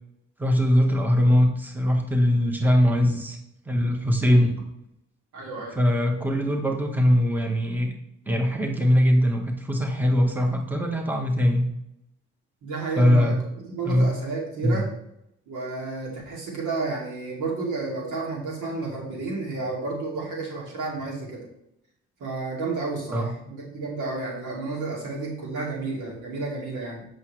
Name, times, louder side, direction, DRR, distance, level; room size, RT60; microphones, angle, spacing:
voice 1, 0.4-3.4 3.7-4.5 5.8-7.9 8.3-11.7 13.0-13.4 13.8-14.1 14.6-14.8 23.1-23.3, equal, 5° right, 2 dB, 1.3 m, -21 dB
voice 2, 5.3-5.8 12.6-13.4 13.6-14.9 15.5-21.5 22.2-27.1, right 3 dB, 80° right, -3 dB, 2.7 m, -31 dB
8.2 x 6.2 x 3.2 m, 0.79 s
cardioid pair, 90°, 30 cm